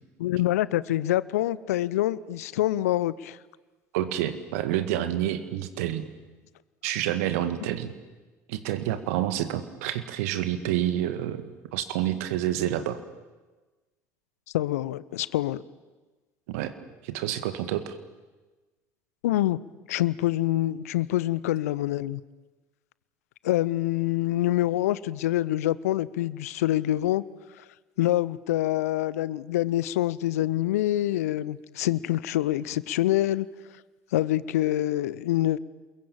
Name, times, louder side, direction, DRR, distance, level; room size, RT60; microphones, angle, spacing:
voice 1, 0.2-3.4 14.5-15.6 19.2-19.6 19.9-22.2 23.4-27.2 28.0-33.5 34.1-35.6, left 14 dB, 70° left, 20 dB, 0.8 m, -26 dB
voice 2, 3.9-6.0 6.8-7.9 8.5-11.4 11.7-13.0 16.5-16.7 17.0-18.0, right 12 dB, 65° right, 11 dB, 1.9 m, -28 dB
28.0 x 22.0 x 8.9 m, 1.2 s
figure-of-eight pair, 60°, 8 cm